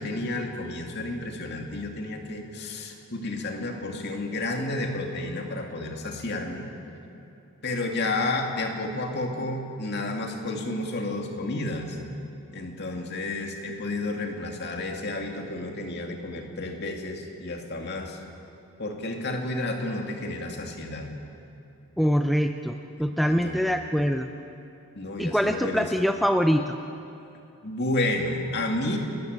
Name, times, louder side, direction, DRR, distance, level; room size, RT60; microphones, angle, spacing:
voice 1, 0.0-6.7 7.6-12.0 12.5-18.2 18.8-21.1 23.2-23.6 25.0-25.9 27.6-29.0, left 2 dB, 50° left, 2 dB, 2.5 m, -31 dB
voice 2, 22.0-24.3 25.2-26.8, equal, ahead, 6 dB, 0.5 m, -24 dB
30.0 x 14.5 x 8.1 m, 2.8 s
head